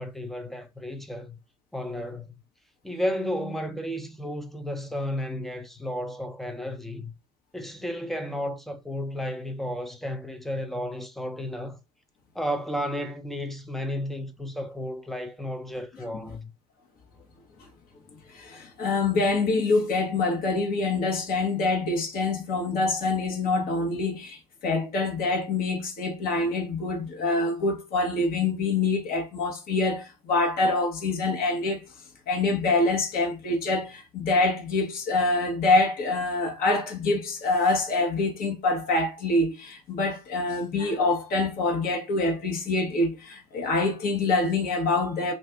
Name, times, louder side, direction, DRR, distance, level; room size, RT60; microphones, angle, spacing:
voice 1, 0.0-1.4 1.7-2.3 2.8-7.1 7.5-11.8 12.3-16.5, equal, ahead, 0.6 m, -33 dB
voice 2, 18.3-31.9 32.3-45.3, left 3 dB, 45° left, 1.0 m, -25 dB
2.6 x 2.4 x 3.5 m
hypercardioid pair, 70°, 20 cm